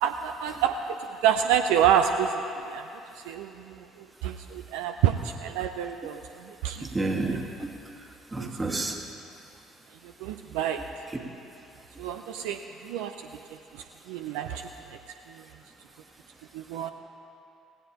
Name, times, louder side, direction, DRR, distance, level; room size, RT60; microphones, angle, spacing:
voice 1, 0.0-1.0 1.2-2.4 2.7-2.8 3.2-6.9 8.4-8.5 10.0-10.8 12.0-13.1 13.7-14.6 16.5-16.9, right 9 dB, 65° right, 6 dB, 0.4 m, -28 dB
voice 2, 6.8-7.7 8.3-9.0, right 2 dB, 20° right, 2 dB, 1.7 m, -30 dB
17.0 x 16.5 x 2.9 m, 2.7 s
figure-of-eight pair, 50°, 0 cm